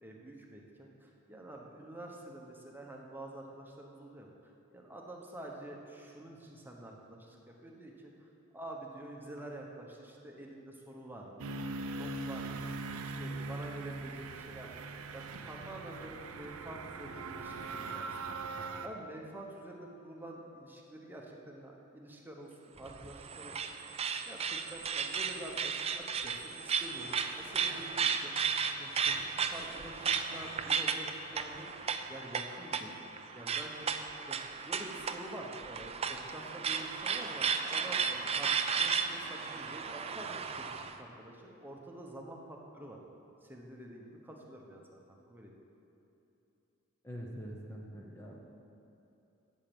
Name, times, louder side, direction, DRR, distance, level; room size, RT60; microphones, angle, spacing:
voice 1, 0.0-4.3 4.7-8.3 8.5-11.5 11.9-12.7 13.0-14.9 15.1-18.3 18.8-23.6 24.3-28.5 28.8-31.8 32.1-33.1 33.3-34.4 34.6-40.7 41.0-43.0 43.4-45.5, right 1 dB, 10° right, 0 dB, 1.1 m, -48 dB
sound 1, 11.4-18.9, right 3 dB, 75° right, 0.6 m, -41 dB
sound 2, 22.8-40.9, right 6 dB, 30° right, 0.4 m, -35 dB
voice 2, 47.0-48.4, equal, 10° left, -2 dB, 0.8 m, -44 dB
8.5 x 7.3 x 8.7 m, 2.9 s
head